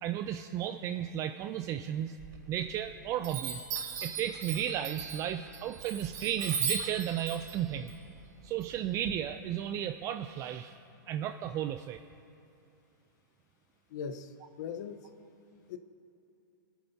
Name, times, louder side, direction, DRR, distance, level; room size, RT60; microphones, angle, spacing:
voice 1, 0.0-2.2 2.5-3.6 4.0-7.9 8.4-10.8 11.1-12.0, right 10 dB, 25° right, 8 dB, 0.4 m, -34 dB
Chime, 2.2-2.9 3.2-9.1, right 6 dB, 50° right, 3.3 m, -38 dB
voice 2, 13.9-15.1 15.7-15.8, left 6 dB, 60° left, 9 dB, 0.9 m, -40 dB
28.5 x 9.4 x 2.7 m, 2.7 s
hypercardioid pair, 140°, 11 cm